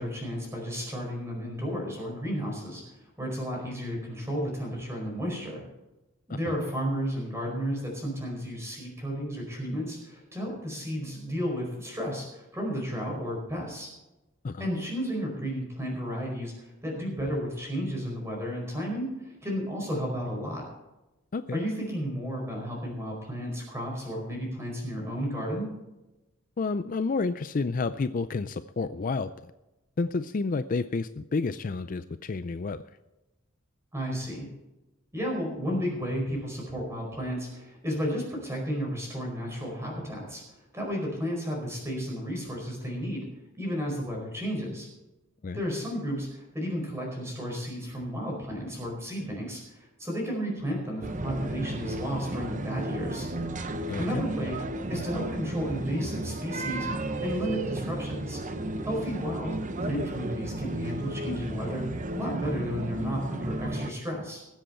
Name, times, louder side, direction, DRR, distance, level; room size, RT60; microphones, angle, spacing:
voice 1, 0.0-2.8 3.2-5.6 6.3-13.9 14.6-20.7 21.5-25.7 33.9-34.5 35.1-40.4 40.7-43.3 43.6-44.9 45.5-53.3 54.0-54.6 54.9-58.4 58.8-59.5 59.8-61.8 62.1-64.4, equal, 10° right, -1 dB, 4.7 m, -33 dB
voice 2, 26.6-29.5 30.0-32.8 45.4-45.6 53.9-54.2, left 4 dB, 40° left, 12 dB, 0.4 m, -30 dB
sound 1, 51.0-63.9, right 1 dB, 35° right, 0.8 m, -33 dB
20.5 x 7.8 x 4.4 m, 1.0 s
head